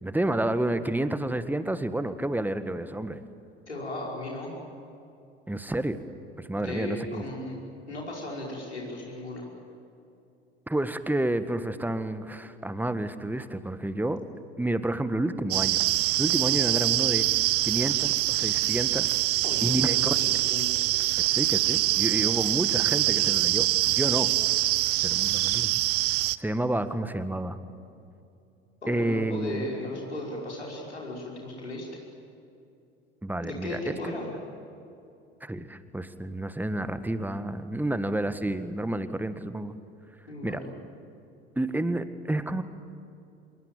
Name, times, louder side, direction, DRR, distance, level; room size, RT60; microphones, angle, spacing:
voice 1, 0.0-3.2 5.5-6.0 6.4-7.2 10.7-14.2 14.6-15.8 16.2-17.3 17.6-19.2 19.6-20.4 21.2-24.3 25.0-25.8 26.4-27.6 28.9-29.6 33.2-34.1 35.4-39.7 40.4-40.6 41.5-42.6, right 1 dB, 5° right, 11 dB, 1.6 m, -30 dB
voice 2, 3.7-4.5 6.5-7.6 7.9-9.5 19.4-20.9 28.8-31.9 33.4-34.3 40.3-40.7, left 1 dB, 85° left, -2 dB, 5.4 m, -36 dB
sound 1, 15.5-26.4, right 17 dB, 45° right, 0.7 m, -24 dB
26.5 x 22.0 x 9.2 m, 2.6 s
figure-of-eight pair, 60°, 33 cm